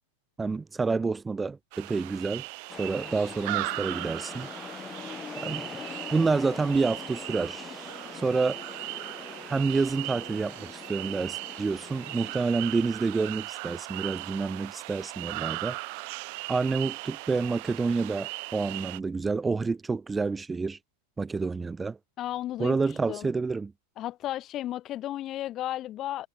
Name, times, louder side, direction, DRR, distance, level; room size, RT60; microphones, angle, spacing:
voice 1, 0.4-2.5 2.8-4.5 5.4-5.7 6.1-7.6 8.1-8.6 9.5-15.8 16.5-20.8 21.2-22.0 22.6-23.7, right 4 dB, 15° right, 1.0 m, -28 dB
sound 1, 1.7-19.0, right 31 dB, 60° right, 1.1 m, -38 dB
sound 2, 2.7-12.4, left 6 dB, 25° left, 1.3 m, -43 dB
voice 2, 22.2-23.3 24.0-26.3, left 13 dB, 40° left, 1.0 m, -34 dB
hypercardioid pair, 105°, 0 cm